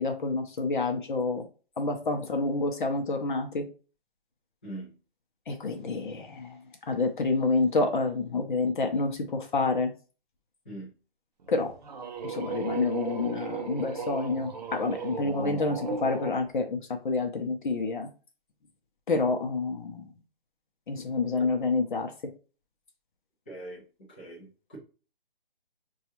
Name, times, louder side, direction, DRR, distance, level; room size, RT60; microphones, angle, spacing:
voice 1, 0.0-1.4 1.8-3.7 5.5-6.6 6.9-9.9 11.5-11.7 12.2-16.8 17.0-18.1 19.1-20.1 20.9-22.1, left 3 dB, 55° left, 0.7 m, -28 dB
voice 2, 4.6-4.9 10.6-10.9 21.4-21.5 23.5-24.8, right 1 dB, 10° left, 0.5 m, -42 dB
sound 1, 11.5-16.4, right 5 dB, 45° right, 0.5 m, -36 dB
5.1 x 2.4 x 2.8 m
hypercardioid pair, 160°, 30 cm